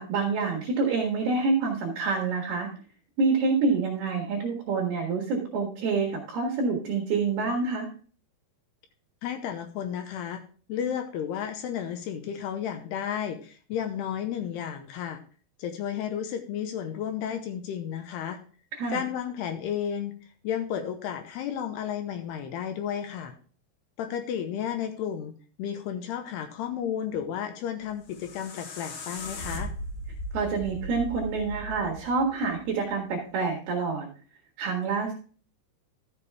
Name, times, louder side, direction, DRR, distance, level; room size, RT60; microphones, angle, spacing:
voice 1, 0.0-2.7 3.2-7.9 18.7-19.0 30.3-34.1 34.6-35.1, right 4 dB, 65° right, -1 dB, 3.2 m, -27 dB
voice 2, 9.2-10.4 10.7-15.2 15.6-18.4 18.9-20.1 20.4-23.3 24.0-29.7, left 9 dB, 80° left, 7 dB, 2.6 m, -32 dB
sound 1, 27.8-32.9, left 1 dB, 60° left, 2.5 m, -38 dB
13.0 x 7.0 x 3.4 m, 0.40 s
omnidirectional pair, 5.3 m